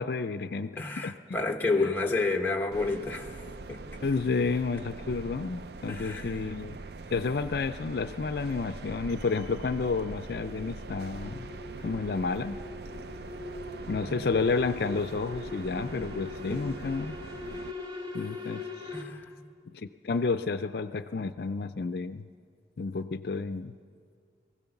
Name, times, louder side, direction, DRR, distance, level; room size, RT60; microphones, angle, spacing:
voice 1, 0.0-1.2 1.8-1.9 4.0-6.8 7.1-11.5 11.8-12.6 13.9-17.1 18.1-18.9 19.7-22.2 22.8-23.7, left 4 dB, 60° left, 10 dB, 0.4 m, -31 dB
voice 2, 0.8-3.4 3.7-3.8 5.9-6.6 14.1-14.2 16.5-16.8 18.9-19.4, left 3 dB, 10° left, 2 dB, 1.0 m, -30 dB
sound 1, 2.7-17.7, right 3 dB, 65° right, 0.5 m, -43 dB
sound 2, 9.2-19.0, left 3 dB, 30° right, 1.8 m, -42 dB
23.0 x 16.0 x 7.1 m, 2.2 s
head